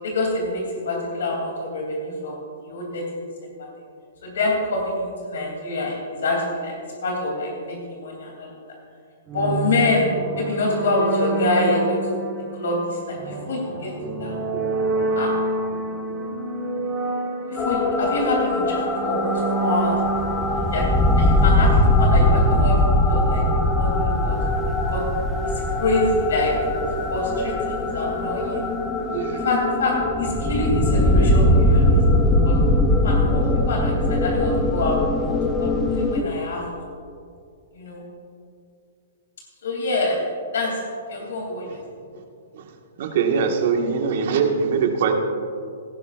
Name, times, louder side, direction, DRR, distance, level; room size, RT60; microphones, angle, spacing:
voice 1, 0.0-3.0 3.6-3.7 4.2-6.7 7.0-8.6 9.3-10.0 10.4-12.0 12.5-13.9 14.2-14.7 15.1-15.3 17.5-20.0 20.3-20.8 21.2-25.0 25.4-26.5 27.1-28.6 29.4-32.0 32.4-32.6 33.0-36.6 37.7-38.0 39.6-40.2 40.5-40.8 41.1-41.8, left 2 dB, 80° left, -1 dB, 2.9 m, -26 dB
sound 1, 9.3-21.8, right 3 dB, 20° right, 1.6 m, -28 dB
sound 2, 17.6-36.2, left 1 dB, 10° left, 0.9 m, -21 dB
voice 2, 29.1-29.4 41.2-41.3 41.7-41.8 42.5-42.7 43.0-45.1, right 6 dB, 55° right, 3 dB, 1.6 m, -22 dB
17.0 x 13.0 x 2.5 m, 2.4 s
hypercardioid pair, 150°, 0 cm